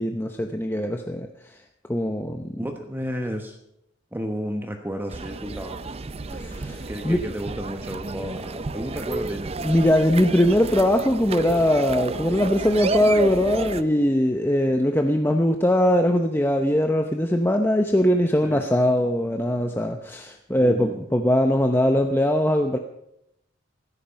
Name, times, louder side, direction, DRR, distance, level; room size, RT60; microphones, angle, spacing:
voice 1, 0.0-1.6 1.9-2.5 6.3-7.2 9.6-22.8, equal, 10° left, 4 dB, 0.8 m, -21 dB
voice 2, 2.6-3.6 4.1-5.8 6.9-9.6 13.8-13.9 18.4-18.6 20.6-21.0, equal, 10° right, 4 dB, 1.2 m, -32 dB
sound 1, 5.1-13.8, right 3 dB, 30° right, 0.5 m, -31 dB
16.0 x 13.5 x 5.3 m, 0.80 s
head